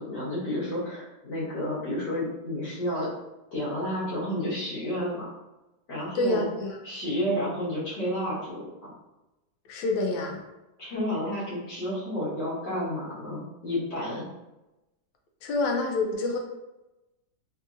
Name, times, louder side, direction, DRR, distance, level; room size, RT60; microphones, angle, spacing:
voice 1, 0.0-3.1 3.5-5.3 5.9-6.5 6.8-8.9 10.8-14.3, equal, 65° left, -8 dB, 2.0 m, -31 dB
voice 2, 6.1-6.8 9.7-10.4 15.4-16.4, left 2 dB, 85° left, 2 dB, 1.4 m, -27 dB
4.0 x 2.7 x 2.5 m, 0.99 s
omnidirectional pair, 2.0 m